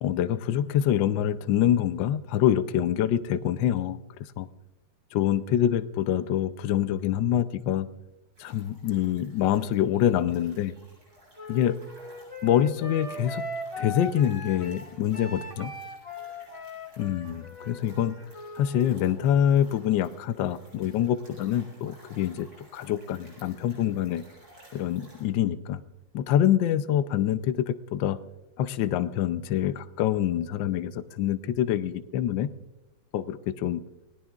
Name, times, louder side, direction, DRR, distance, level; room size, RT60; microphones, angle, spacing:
voice 1, 0.0-4.0 4.4-4.5 5.1-7.9 8.4-10.7 11.5-11.8 12.4-13.5 13.8-15.7 17.0-18.2 18.6-22.5 22.7-24.2 24.7-25.8 26.1-28.2 28.6-32.5 33.1-33.8, left 10 dB, 70° left, 11 dB, 1.3 m, -25 dB
sound 1, 8.4-25.2, right 1 dB, 60° right, 8.9 m, -56 dB
Wind instrument woodwind instrument, 11.4-18.9, left 1 dB, 15° left, 1.7 m, -39 dB
30.0 x 18.5 x 2.4 m, 1.0 s
omnidirectional pair, 2.2 m